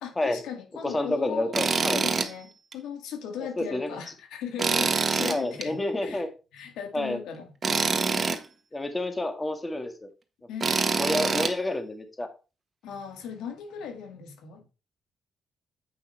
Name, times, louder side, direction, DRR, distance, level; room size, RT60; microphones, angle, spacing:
voice 1, 0.0-1.6 1.9-6.3 6.5-7.5 10.5-10.7 12.8-14.6, left 7 dB, 90° left, 1.9 m, -38 dB
voice 2, 0.8-2.0 3.6-3.9 5.3-6.3 6.9-7.2 8.7-10.1 11.0-12.3, left 2 dB, 20° left, 1.8 m, -29 dB
Tools, 1.5-2.3 2.7-2.8 4.6-5.7 7.6-8.4 10.6-11.5, right 4 dB, 35° right, 1.4 m, -25 dB
8.5 x 5.6 x 4.5 m
cardioid pair, 80°, 0 cm